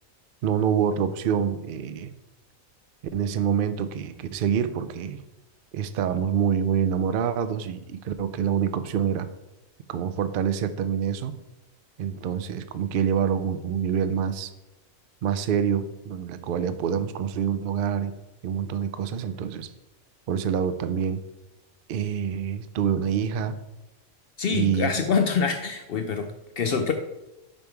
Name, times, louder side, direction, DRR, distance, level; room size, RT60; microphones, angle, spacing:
voice 1, 0.4-2.1 3.1-5.2 5.7-9.3 9.9-11.4 12.0-14.5 15.2-18.1 18.4-19.7 20.3-21.2 21.9-23.6 24.5-25.0, right 8 dB, 85° right, 12 dB, 0.4 m, -26 dB
voice 2, 24.4-26.9, left 5 dB, 65° left, 5 dB, 0.6 m, -25 dB
5.3 x 5.2 x 4.5 m, 0.98 s
omnidirectional pair, 1.5 m